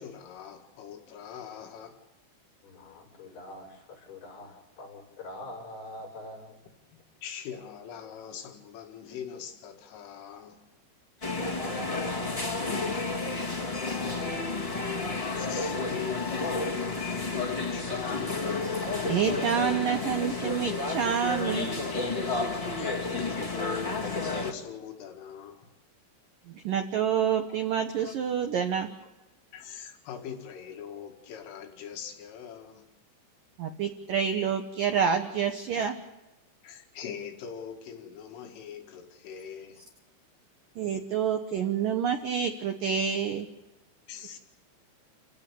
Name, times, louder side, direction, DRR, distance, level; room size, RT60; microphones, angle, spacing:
voice 1, 0.0-2.0 7.2-10.6 15.4-18.8 21.9-22.0 22.8-25.7 28.0-28.1 29.5-32.9 34.6-34.7 35.2-35.3 36.6-39.8 44.1-44.4, left 8 dB, 85° left, 4.6 m, -41 dB
voice 2, 2.6-6.6 11.2-14.8, left 1 dB, 50° left, 8.3 m, -44 dB
sound 1, 11.2-24.5, left 3 dB, 35° left, 0.5 m, -31 dB
voice 3, 19.1-21.7 26.5-28.9 33.6-36.0 40.8-43.5, right 7 dB, 75° right, 2.0 m, -28 dB
29.5 x 17.0 x 7.0 m
omnidirectional pair, 5.6 m